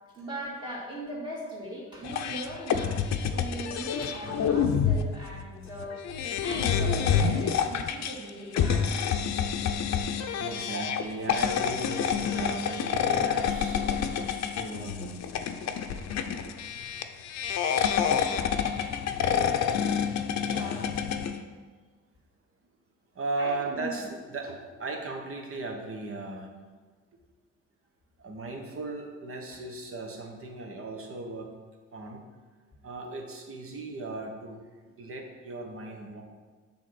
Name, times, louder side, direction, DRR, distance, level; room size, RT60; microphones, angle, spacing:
voice 1, 0.1-3.0 3.3-6.1 6.4-9.0 9.4-10.0 13.8-13.9 19.6-19.9 20.4-20.9 23.4-24.2, right 1 dB, 15° right, -8 dB, 2.1 m, -39 dB
sound 1, 2.0-21.4, left 7 dB, 60° left, 0.6 m, -28 dB
voice 2, 10.4-15.3 16.8-17.0 17.5-17.7 18.7-19.1 23.1-26.5 28.2-31.5 31.9-32.2 32.8-36.2, right 2 dB, 45° right, 2 dB, 1.3 m, -37 dB
7.5 x 3.6 x 6.0 m, 1.4 s
cardioid pair, 90°, 30 cm